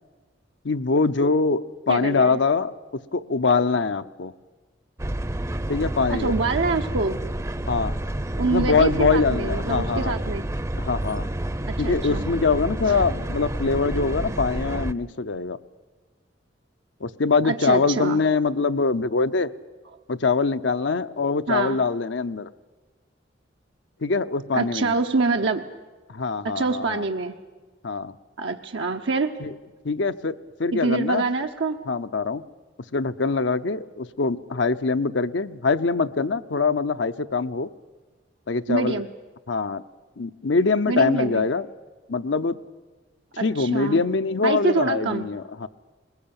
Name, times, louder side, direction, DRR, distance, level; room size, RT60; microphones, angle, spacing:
voice 1, 0.6-4.3 5.7-6.3 7.7-7.9 8.5-10.2 10.8-11.3 11.8-15.6 17.0-19.5 20.1-22.5 24.0-24.9 26.1-27.0 27.8-28.1 29.4-29.5 29.8-31.2 31.9-32.4 32.9-37.7 38.5-39.0 39.5-39.8 40.2-41.7 42.1-42.6 43.4-45.7, left 4 dB, 75° left, 11 dB, 0.7 m, -23 dB
voice 2, 1.9-2.4 6.1-7.2 8.4-10.5 11.7-12.3 17.4-18.2 21.5-21.8 24.5-25.7 26.4-27.4 28.4-29.3 30.7-31.8 38.7-39.1 40.9-41.4 43.4-44.1 44.4-45.3, right 3 dB, 80° right, 3 dB, 0.9 m, -25 dB
sound 1, 5.0-14.9, right 1 dB, 15° right, 0.6 m, -29 dB
21.0 x 20.5 x 8.8 m, 1.3 s
head